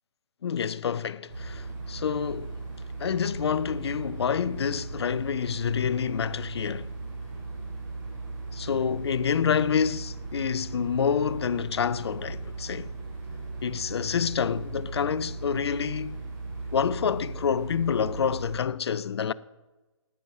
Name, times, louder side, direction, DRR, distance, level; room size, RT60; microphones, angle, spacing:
voice 1, 0.4-2.6 3.0-6.9 8.5-12.9 13.6-16.2 16.7-19.3, left 7 dB, 55° left, 0.6 m, -28 dB
sound 1, 1.3-18.6, right 3 dB, 35° right, 5.0 m, -37 dB
12.5 x 10.0 x 7.3 m
figure-of-eight pair, 140°, 16 cm